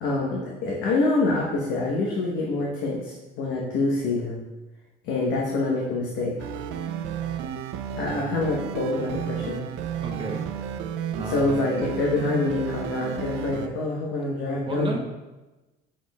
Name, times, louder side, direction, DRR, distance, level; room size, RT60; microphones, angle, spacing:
voice 1, 0.0-4.4 5.0-6.3 8.0-9.6 11.2-15.0, left 2 dB, 70° left, -3 dB, 1.1 m, -26 dB
sound 1, 6.4-13.7, right 8 dB, 75° right, 0.5 m, -32 dB
voice 2, 10.0-10.4 11.1-11.7 14.7-15.0, right 2 dB, 25° right, 1 dB, 0.8 m, -32 dB
6.4 x 6.1 x 2.4 m, 1.1 s
supercardioid pair, 95°, 19 cm